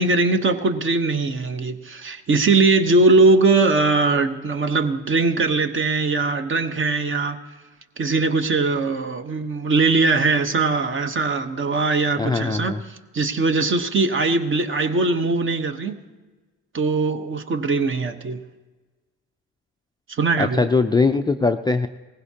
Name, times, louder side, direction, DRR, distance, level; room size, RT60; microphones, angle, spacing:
voice 1, 0.0-7.4 8.0-12.7 13.1-15.9 16.7-18.4 20.2-20.6, right 3 dB, 35° right, 8 dB, 1.0 m, -20 dB
voice 2, 12.2-12.8 20.4-21.9, left 4 dB, 15° left, 6 dB, 0.4 m, -21 dB
18.5 x 16.0 x 2.9 m, 1.3 s
supercardioid pair, 85°, 33 cm